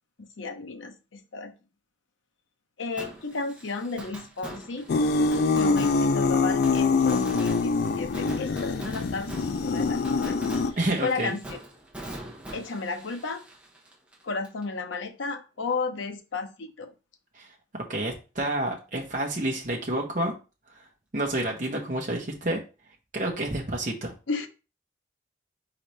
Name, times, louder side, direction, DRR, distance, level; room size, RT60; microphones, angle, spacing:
voice 1, 0.2-1.5 2.8-4.9 5.5-10.4 10.7-11.6 12.5-13.5 14.2-16.9 24.3-24.5, left 4 dB, 80° left, 7 dB, 0.7 m, -33 dB
Fireworks, 3.0-14.6 14.9-15.0 21.6-21.7, right 1 dB, 5° right, 1.0 m, -43 dB
sound 1, 4.9-10.7, left 4 dB, 55° left, 0.3 m, -24 dB
voice 2, 10.8-11.3 17.3-17.5 17.7-20.3 20.7-20.9 21.1-22.6 23.1-24.1, right 1 dB, 40° right, 0 dB, 0.8 m, -29 dB
4.1 x 4.0 x 3.2 m, 0.31 s
head